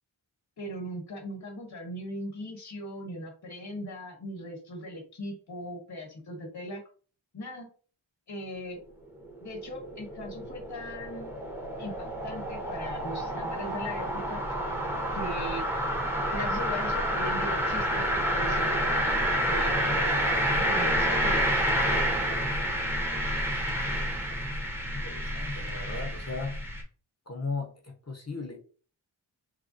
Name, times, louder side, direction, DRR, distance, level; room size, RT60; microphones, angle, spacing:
voice 1, 0.6-6.8 7.3-7.7 8.3-8.8 9.4-11.3 11.8-14.4 15.1-15.7 16.3-21.4, left 1 dB, 55° left, 1.1 m, -39 dB
sound 1, 9.2-26.8, equal, 5° right, 0.7 m, -29 dB
voice 2, 24.8-26.7 27.3-28.6, left 3 dB, 35° left, 0.7 m, -37 dB
3.3 x 2.2 x 2.5 m
wide cardioid pair, 55°, 47 cm